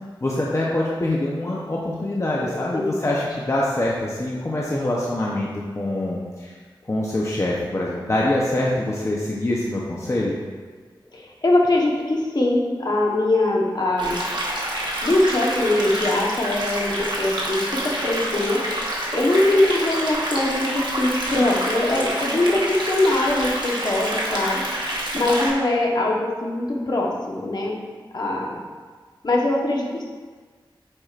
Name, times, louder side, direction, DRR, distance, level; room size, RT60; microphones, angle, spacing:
voice 1, 0.2-5.5 5.7-6.5 6.9-10.4, left 1 dB, 35° left, -4 dB, 0.8 m, -24 dB
voice 2, 2.7-3.1 11.1-14.2 15.0-18.6 19.1-24.6 25.1-27.8 28.1-28.6 29.2-30.1, left 2 dB, 50° left, -2 dB, 1.1 m, -22 dB
sound 1, 14.0-25.5, right 1 dB, 55° right, 1.2 m, -27 dB
8.8 x 4.8 x 2.5 m, 1.5 s
wide cardioid pair, 75°, 9 cm